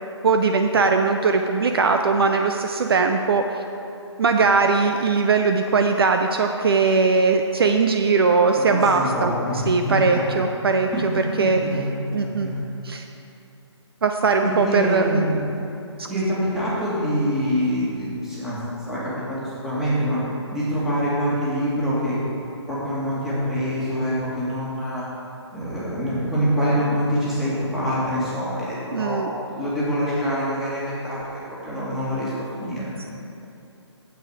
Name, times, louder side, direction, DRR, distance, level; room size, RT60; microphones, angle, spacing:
voice 1, 0.2-3.6 4.2-9.3 9.7-10.9 11.4-11.6 12.1-12.5 12.8-13.0 14.0-15.3 16.0-16.1 28.9-29.3, right 4 dB, 55° right, 5 dB, 0.6 m, -20 dB
voice 2, 8.6-10.4 10.9-12.6 14.4-15.4 16.1-18.6 18.9-19.4 19.6-20.2 20.5-22.2 22.7-25.0 25.5-31.2 31.6-32.9, equal, 5° right, -10 dB, 2.1 m, -25 dB
9.1 x 8.0 x 4.9 m, 2.8 s
figure-of-eight pair, 145°, 15 cm